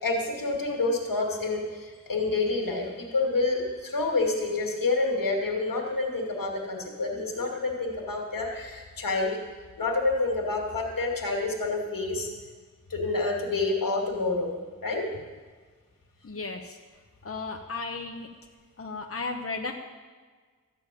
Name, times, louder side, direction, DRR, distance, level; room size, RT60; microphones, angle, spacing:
voice 1, 0.0-9.4 9.8-12.3 12.9-15.1, left 3 dB, 85° left, 0 dB, 2.5 m, -28 dB
voice 2, 16.2-16.6 17.2-18.3 18.8-19.7, left 3 dB, 45° left, 2 dB, 1.1 m, -34 dB
13.5 x 7.0 x 9.2 m, 1.5 s
wide cardioid pair, 85°, 33 cm